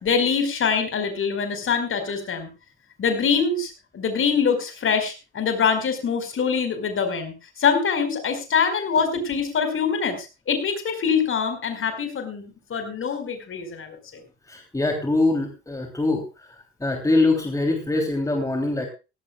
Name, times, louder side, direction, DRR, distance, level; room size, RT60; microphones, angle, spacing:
voice 1, 0.0-2.5 3.0-14.0, left 6 dB, 35° left, 8 dB, 4.9 m, -24 dB
voice 2, 14.5-16.2 16.8-18.9, left 2 dB, 10° left, 3 dB, 3.3 m, -23 dB
18.0 x 17.0 x 2.4 m, 0.30 s
figure-of-eight pair, 65°, 35 cm